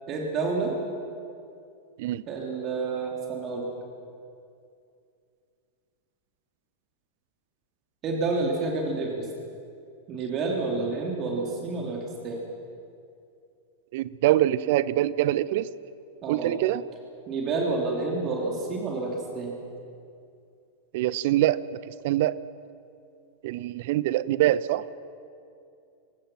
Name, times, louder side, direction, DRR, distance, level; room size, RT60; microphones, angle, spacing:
voice 1, 0.1-0.7 2.3-3.7 8.0-9.3 10.1-12.4 16.2-16.5 17.3-19.5, right 3 dB, 35° right, -1 dB, 3.5 m, -29 dB
voice 2, 13.9-15.7 16.3-16.8 20.9-21.6 21.9-22.3 23.4-24.8, right 14 dB, 50° right, 17 dB, 0.7 m, -24 dB
25.0 x 20.0 x 6.0 m, 2.5 s
figure-of-eight pair, 90°, 0 cm